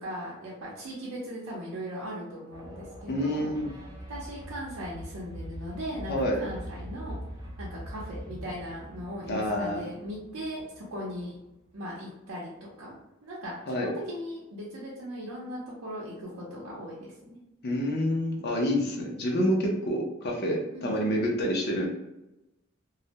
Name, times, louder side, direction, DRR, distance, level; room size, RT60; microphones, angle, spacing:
voice 1, 0.0-3.5 4.1-7.2 7.6-11.4 11.7-13.0 13.2-17.4 20.7-20.9, equal, 85° right, -6 dB, 0.6 m, -38 dB
sound 1, 2.5-11.6, equal, 20° right, 0.5 m, -43 dB
voice 2, 3.1-3.7 6.1-6.4 9.3-9.8 13.7-13.9 17.6-21.9, equal, 50° left, 0 dB, 0.6 m, -28 dB
2.3 x 2.1 x 2.8 m, 0.95 s
head